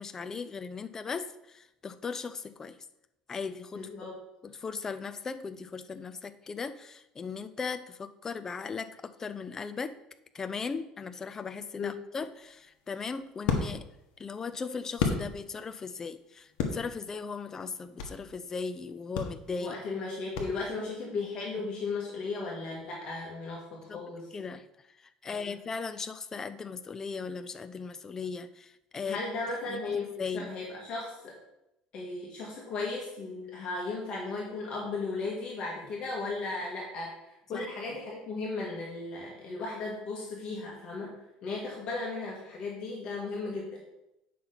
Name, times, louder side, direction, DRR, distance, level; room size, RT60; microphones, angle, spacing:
voice 1, 0.0-2.8 3.3-4.1 4.4-10.0 10.3-13.9 14.2-19.8 20.8-20.9 23.9-24.0 24.3-24.7 25.0-29.2 29.7-30.5 37.5-37.7, left 5 dB, 25° left, 11 dB, 0.5 m, -38 dB
voice 2, 3.7-4.2 11.8-11.9 19.6-24.3 25.3-25.6 29.1-31.4 31.9-41.1 41.4-43.8, left 3 dB, 45° left, -3 dB, 2.1 m, -36 dB
sound 1, 12.3-15.8 16.1-18.3 18.6-18.8 19.1-21.0, left 5 dB, 75° left, 1.4 m, -34 dB
9.1 x 5.8 x 4.1 m, 0.88 s
cardioid pair, 125°, 2 cm